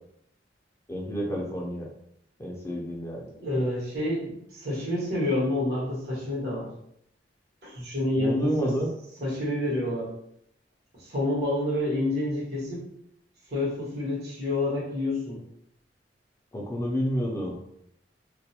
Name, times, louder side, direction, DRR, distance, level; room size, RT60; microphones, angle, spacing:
voice 1, 0.9-1.9 2.4-3.3 8.2-8.9 16.5-17.6, equal, 15° left, -2 dB, 0.4 m, -29 dB
voice 2, 3.4-6.7 7.6-8.7 9.2-10.1 10.9-12.8 13.5-15.4, left 1 dB, 65° right, -5 dB, 1.1 m, -28 dB
2.3 x 2.1 x 2.8 m, 0.75 s
head